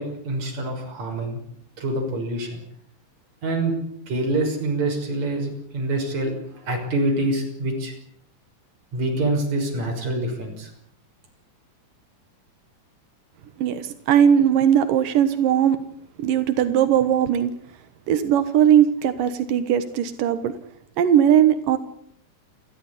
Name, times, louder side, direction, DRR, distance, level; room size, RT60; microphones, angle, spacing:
voice 1, 0.0-1.4 1.8-2.6 3.4-3.7 4.1-7.9 8.9-10.7, right 2 dB, 55° right, 2 dB, 7.4 m, -26 dB
voice 2, 13.6-15.8 16.2-17.5 18.1-20.5 21.0-21.8, right 9 dB, 90° right, 11 dB, 3.0 m, -19 dB
29.5 x 13.5 x 9.9 m, 0.69 s
omnidirectional pair, 3.7 m